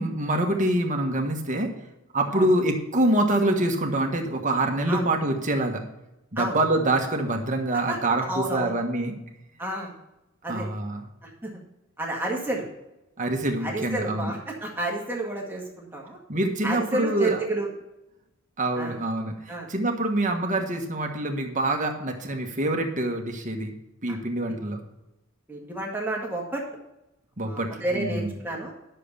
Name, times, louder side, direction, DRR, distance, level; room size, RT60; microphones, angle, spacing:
voice 1, 0.0-1.7 2.1-5.8 6.3-9.1 10.5-11.0 13.2-14.3 16.3-17.4 18.6-23.7 24.0-24.8 27.4-28.4, right 1 dB, 35° right, 3 dB, 1.4 m, -25 dB
voice 2, 8.3-8.7 9.6-10.0 10.4-10.7 11.2-11.6 12.0-12.7 13.6-16.2 16.6-17.7 18.7-19.0 19.5-19.7 24.1-24.2 25.5-26.6 27.4-28.7, right 1 dB, 10° right, -2 dB, 1.8 m, -30 dB
11.0 x 6.8 x 5.4 m, 0.93 s
head